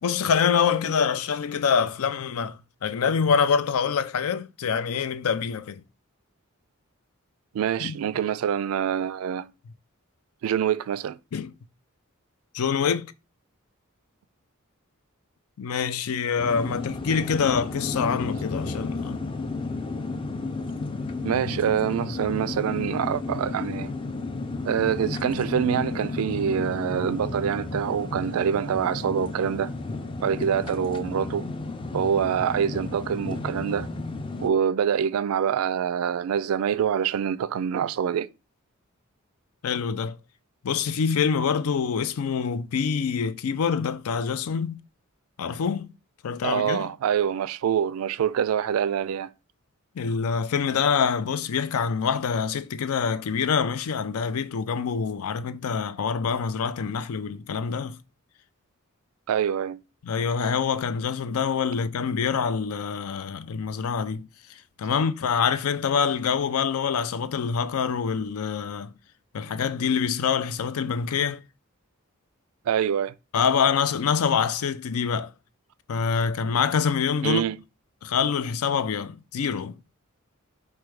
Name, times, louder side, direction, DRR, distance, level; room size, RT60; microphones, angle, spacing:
voice 1, 0.0-5.8 7.8-7.9 11.3-11.5 12.5-13.1 15.6-19.2 24.3-24.5 39.6-40.2 40.6-44.8 45.4-45.9 46.2-46.9 50.0-58.0 60.0-68.9 69.3-71.4 73.3-75.3 75.9-77.4 78.0-79.8, left 6 dB, 80° left, 0.4 m, -25 dB
voice 2, 7.5-9.5 10.4-11.2 21.2-23.9 24.6-29.7 30.2-31.5 31.9-33.9 34.4-38.3 46.4-49.3 59.3-59.8 72.7-73.1 77.2-77.6, right 8 dB, 75° right, 0.3 m, -25 dB
sound 1, 16.4-34.5, left 3 dB, 25° left, 0.4 m, -33 dB
4.6 x 2.2 x 4.7 m
head